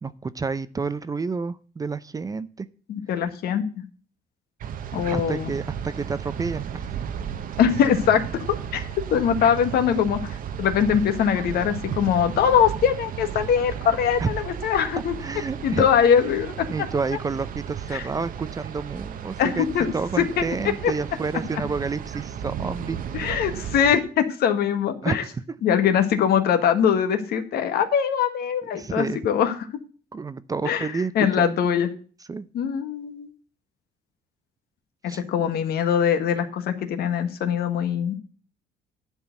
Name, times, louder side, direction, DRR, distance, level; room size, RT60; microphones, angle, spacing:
voice 1, 0.0-2.7 5.1-6.8 14.2-14.3 15.2-15.9 16.7-23.4 25.0-25.4 28.7-29.2 30.1-31.6 32.3-32.5 35.1-35.2, right 4 dB, 20° right, 15 dB, 0.5 m, -30 dB
voice 2, 2.9-3.6 4.9-5.5 7.6-8.4 8.7-8.8 9.1-15.1 15.6-16.7 17.9-18.0 19.4-20.2 20.8-20.9 23.1-25.2 25.6-29.5 30.6-31.9 32.5-33.3 35.3-38.2, left 8 dB, 70° left, 8 dB, 1.5 m, -22 dB
sound 1, 4.6-24.0, right 9 dB, 55° right, 0.9 m, -34 dB
10.5 x 4.5 x 8.0 m, 0.40 s
cardioid pair, 110°, 17 cm